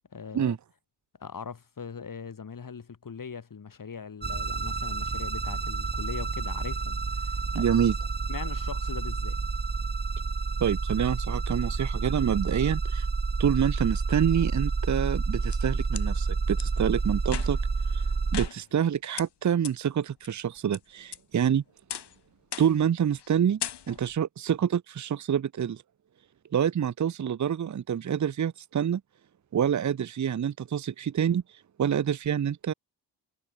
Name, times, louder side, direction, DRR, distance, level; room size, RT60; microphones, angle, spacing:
voice 1, 0.1-0.6 1.2-7.7 8.3-9.4, left 6 dB, 50° left, 6.4 m, -41 dB
sound 1, 4.2-18.5, right 4 dB, 25° right, 1.3 m, -29 dB
voice 2, 7.5-7.9 10.6-13.1 13.4-17.6 17.9-18.0 18.3-21.6 22.6-23.6 23.9-25.8 26.5-29.0 29.5-32.7, right 8 dB, 40° right, 0.9 m, -27 dB
sound 2, 15.1-16.1 16.6-16.7 17.2-17.7 18.3-18.9 19.2-19.3 19.6-19.7 20.2-20.8 21.1-21.5 21.9-22.2 22.5-22.9 23.2-23.3 23.6-24.2, left 9 dB, 70° left, 3.7 m, -38 dB
cardioid pair, 65°, 43 cm